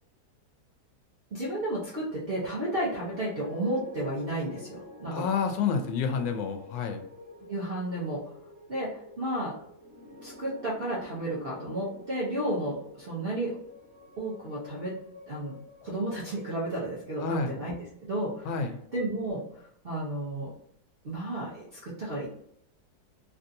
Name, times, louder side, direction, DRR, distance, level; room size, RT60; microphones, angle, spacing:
voice 1, 1.3-5.3 7.5-8.4 8.7-9.6 10.2-13.6 14.2-15.0 15.3-18.6 18.9-20.5 21.0-22.3, right 1 dB, 55° right, -6 dB, 0.6 m, -32 dB
sound 1, 2.3-18.6, left 2 dB, 40° left, 1.3 m, -49 dB
voice 2, 5.1-7.0 17.2-17.5 18.4-18.7, left 6 dB, 90° left, 6 dB, 1.2 m, -29 dB
3.3 x 2.6 x 2.5 m, 0.70 s
omnidirectional pair, 1.9 m